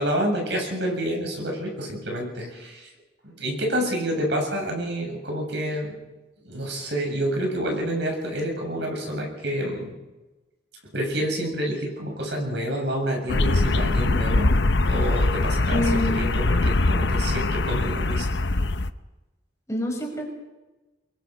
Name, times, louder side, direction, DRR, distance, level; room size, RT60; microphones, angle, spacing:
voice 1, 0.0-2.9 3.2-6.0 6.4-9.9 10.9-14.5 14.8-18.3, equal, 65° right, 1 dB, 7.5 m, -28 dB
sound 1, 13.3-18.9, left 2 dB, 70° left, 0.9 m, -22 dB
voice 2, 15.7-16.3 19.7-20.3, left 1 dB, 15° left, 1 dB, 5.3 m, -26 dB
24.5 x 22.5 x 5.5 m, 1.1 s
head